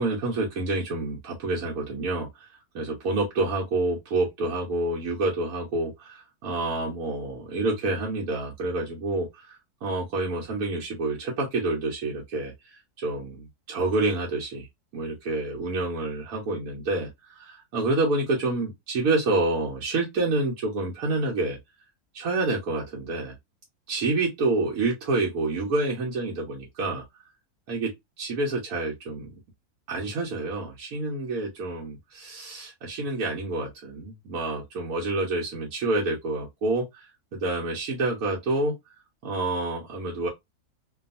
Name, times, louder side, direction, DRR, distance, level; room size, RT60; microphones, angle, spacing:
voice 1, 0.0-2.5 2.7-14.7 14.9-21.6 22.1-23.3 23.9-27.0 27.7-27.9 28.2-29.3 29.9-37.1 37.3-38.7 39.2-40.3, right 2 dB, 70° right, 1.1 m, -28 dB
2.7 x 2.3 x 2.5 m
omnidirectional pair, 1.7 m